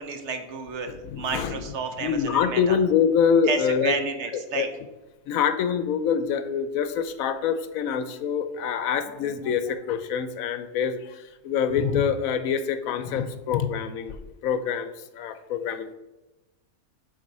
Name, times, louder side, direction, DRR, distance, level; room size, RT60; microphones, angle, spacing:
voice 1, 0.0-2.8 3.5-4.7, right 5 dB, 60° right, 7 dB, 0.9 m, -31 dB
voice 2, 1.0-1.6 2.0-4.0 4.5-4.7 5.3-16.0, left 7 dB, 80° left, 11 dB, 1.0 m, -25 dB
7.8 x 3.6 x 5.3 m, 1.0 s
omnidirectional pair, 1.4 m